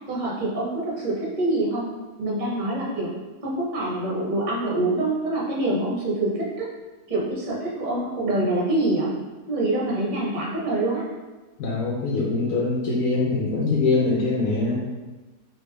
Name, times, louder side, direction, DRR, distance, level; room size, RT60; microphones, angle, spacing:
voice 1, 0.1-1.9 2.2-3.1 3.4-6.7 7.1-9.1 9.5-11.1, right 2 dB, 40° right, -4 dB, 0.7 m, -25 dB
voice 2, 11.6-14.8, left 3 dB, 70° left, -5 dB, 1.0 m, -23 dB
3.3 x 2.5 x 3.2 m, 1.2 s
omnidirectional pair, 1.6 m